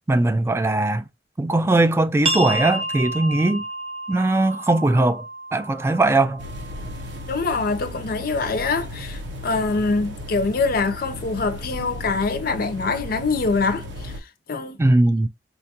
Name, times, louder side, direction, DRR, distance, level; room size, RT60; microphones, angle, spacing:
voice 1, 0.1-1.1 1.4-3.6 4.1-5.2 5.5-6.4 14.8-15.3, right 2 dB, 15° right, 0.3 m, -19 dB
sound 1, 2.2-7.6, right 1 dB, 35° right, 0.7 m, -31 dB
sound 2, 6.4-14.2, left 1 dB, 85° right, 0.7 m, -35 dB
voice 2, 7.3-14.1 14.5-14.8, left 3 dB, 55° left, 0.5 m, -24 dB
4.2 x 2.3 x 2.7 m
head